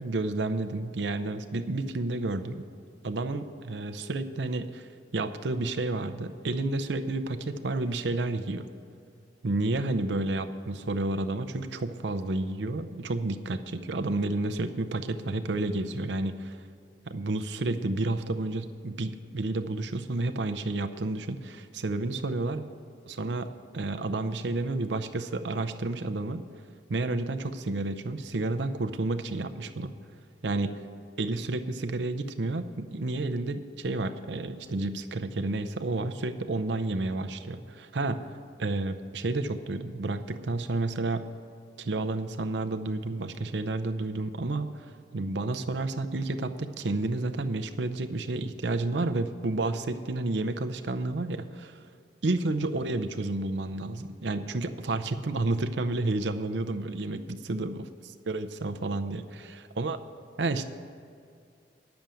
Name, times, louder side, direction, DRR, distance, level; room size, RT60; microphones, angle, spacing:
voice 1, 0.0-2.7 3.0-8.7 9.4-16.6 17.1-22.6 23.1-26.4 26.9-29.9 30.4-30.7 31.2-38.3 38.6-41.3 41.8-51.8 52.2-57.8 58.3-60.0 60.4-60.7, right 2 dB, 80° right, 9 dB, 0.6 m, -31 dB
10.5 x 7.0 x 7.7 m, 2.4 s
head